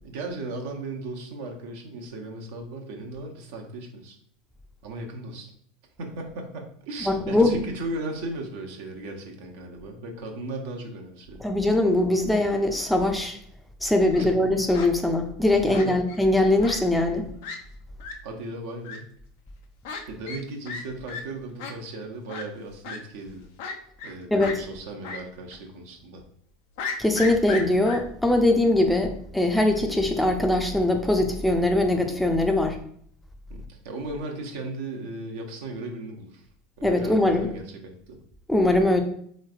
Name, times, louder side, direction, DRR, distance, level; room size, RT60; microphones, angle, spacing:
voice 1, 0.0-4.2 4.8-5.5 6.0-11.4 14.2-14.5 15.7-16.0 18.2-19.1 20.1-23.5 24.0-26.2 33.5-36.5 36.8-38.2, right 2 dB, 65° right, 1 dB, 0.7 m, -36 dB
voice 2, 7.0-7.6 11.4-13.4 13.8-17.3 24.3-24.6 27.0-32.8 36.8-37.5 38.5-39.0, left 1 dB, 5° left, 4 dB, 0.5 m, -22 dB
Fowl, 13.9-14.3 14.7-14.9 15.7-16.2 16.6-16.8 17.1-17.2 17.4-17.6 18.0-18.1 18.8-19.0 19.8-20.0 20.3-20.4 20.7-20.8 21.1-21.2 21.6-21.7 22.3-22.4 22.8-23.0 23.6-24.1 24.4-24.6 25.0-25.2 25.5-25.6 26.8-28.0, left 4 dB, 65° left, 0.5 m, -34 dB
3.8 x 3.1 x 2.5 m, 0.63 s
hypercardioid pair, 80°, 0 cm